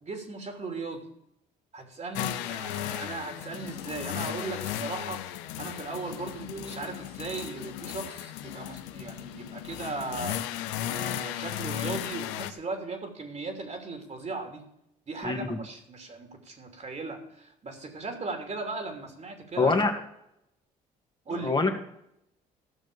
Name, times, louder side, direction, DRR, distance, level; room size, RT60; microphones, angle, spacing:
voice 1, 0.0-1.0 1.7-14.6 15.1-19.9 21.2-21.6, right 3 dB, 40° right, 5 dB, 3.0 m, -37 dB
sound 1, 2.1-12.5, left 12 dB, 85° left, 0.7 m, -35 dB
voice 2, 15.2-15.6 19.6-19.9 21.4-21.7, left 3 dB, 25° left, 3 dB, 2.0 m, -24 dB
14.5 x 6.2 x 6.8 m, 0.77 s
supercardioid pair, 60°, 18 cm